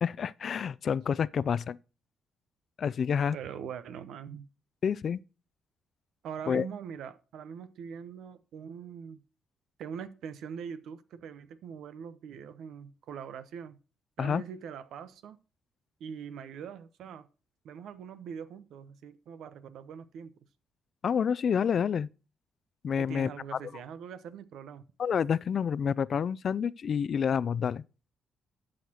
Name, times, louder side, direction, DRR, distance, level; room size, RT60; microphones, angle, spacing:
voice 1, 0.0-1.8 2.8-3.4 4.8-5.2 6.5-6.7 14.2-14.4 21.0-22.1 22.8-23.6 25.0-27.8, left 7 dB, 55° left, 0.3 m, -28 dB
voice 2, 3.3-4.5 6.2-9.2 9.8-13.8 14.2-15.4 16.0-17.3 17.6-20.3 23.0-24.8, right 7 dB, 75° right, 0.8 m, -42 dB
12.0 x 6.5 x 2.9 m
cardioid pair, 90°, 0 cm